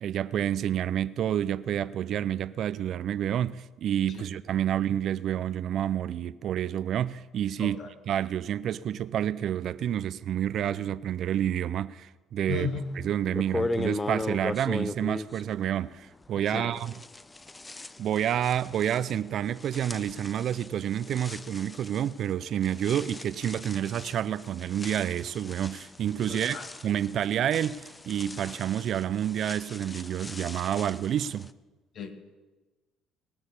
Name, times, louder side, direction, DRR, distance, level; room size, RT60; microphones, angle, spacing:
voice 1, 0.0-7.8 8.1-12.7 13.0-16.9 18.0-26.6 26.8-31.5, right 10 dB, 60° right, 0.4 m, -29 dB
voice 2, 7.6-7.9 12.5-12.9 16.4-16.7 26.3-26.7 31.9-32.4, left 5 dB, 60° left, 1.9 m, -35 dB
sound 1, 12.8-12.9 13.3-16.4 16.8-31.5, left 2 dB, 20° left, 0.6 m, -39 dB
19.0 x 6.3 x 8.4 m
supercardioid pair, 70°, 0 cm